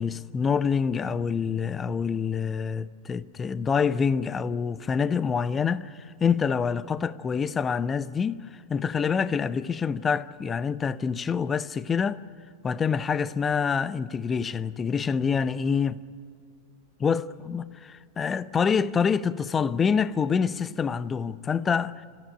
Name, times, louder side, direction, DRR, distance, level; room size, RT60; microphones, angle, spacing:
voice 1, 0.0-12.2 12.6-16.0 17.0-22.1, left 6 dB, 20° left, 0.6 m, -26 dB
25.5 x 14.0 x 9.9 m
figure-of-eight pair, 90°, 0 cm